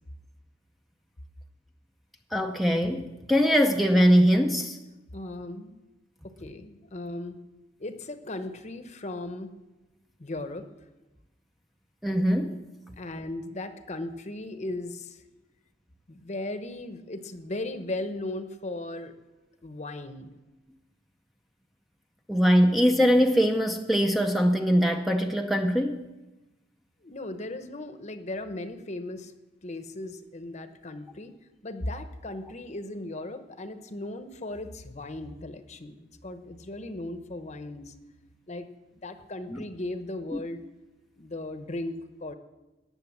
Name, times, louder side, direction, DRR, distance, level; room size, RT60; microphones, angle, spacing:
voice 1, 2.3-4.8 12.0-12.5 22.3-26.1 39.5-39.6 40.3-40.4, equal, ahead, 4 dB, 0.6 m, -22 dB
voice 2, 5.1-5.8 6.4-7.4 7.8-9.5 10.2-10.7 13.0-15.2 16.1-19.1 19.6-20.3 27.0-29.3 29.6-31.3 31.6-37.9 38.5-38.7 39.0-40.6 41.2-42.3, left 2 dB, 35° left, 9 dB, 0.9 m, -37 dB
17.5 x 7.0 x 7.2 m, 1.1 s
head